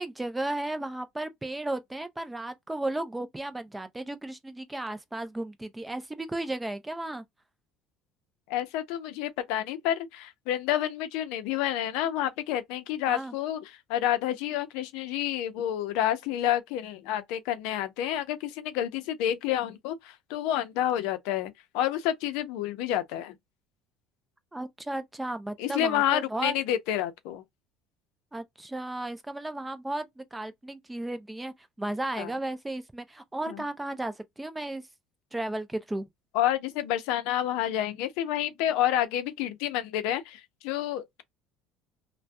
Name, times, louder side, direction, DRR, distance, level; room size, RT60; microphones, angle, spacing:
voice 1, 0.0-7.2 13.1-13.3 24.5-26.5 28.3-34.8 35.3-36.1, right 1 dB, 10° right, 0.5 m, -34 dB
voice 2, 8.5-23.4 25.6-27.4 32.2-32.3 33.5-33.6 36.3-41.2, left 11 dB, 75° left, 0.5 m, -29 dB
2.6 x 2.1 x 2.2 m
supercardioid pair, 105°, 0 cm